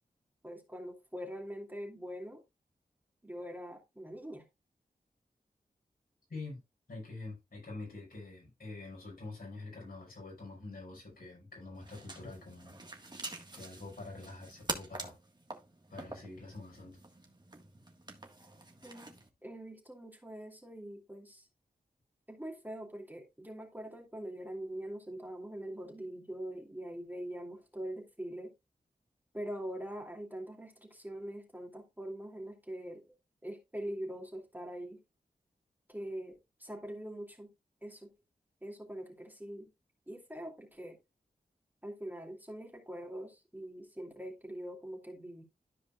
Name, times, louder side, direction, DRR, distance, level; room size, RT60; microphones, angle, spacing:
voice 1, 0.4-2.4 3.2-4.4 18.8-19.1 19.4-21.5 22.3-28.5 29.3-33.1 33.4-35.0 35.9-36.3 36.6-37.5 37.8-38.1 38.6-39.7 40.1-41.0 41.8-45.4, right 1 dB, 10° right, 2.6 m, -43 dB
voice 2, 6.9-12.8 13.5-15.2 15.9-17.0, left 2 dB, 70° left, 6.0 m, -46 dB
sound 1, 11.7-19.3, right 2 dB, 30° right, 1.8 m, -46 dB
13.0 x 4.9 x 2.5 m
cardioid pair, 50°, 16 cm